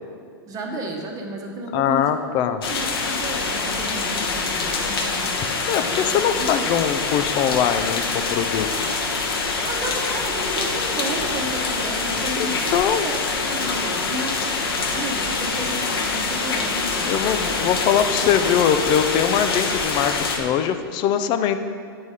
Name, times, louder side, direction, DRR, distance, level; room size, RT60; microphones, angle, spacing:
voice 1, 0.5-2.4 2.7-5.3 5.8-6.5 9.6-14.6 14.9-17.6, right 1 dB, 30° right, 1 dB, 1.1 m, -32 dB
voice 2, 1.7-2.6 5.7-8.9 12.7-13.1 17.1-21.6, left 9 dB, 40° left, 10 dB, 0.5 m, -22 dB
sound 1, 2.6-20.4, left 4 dB, 80° left, 1.1 m, -25 dB
9.5 x 4.1 x 4.8 m, 2.2 s
hypercardioid pair, 115°, 12 cm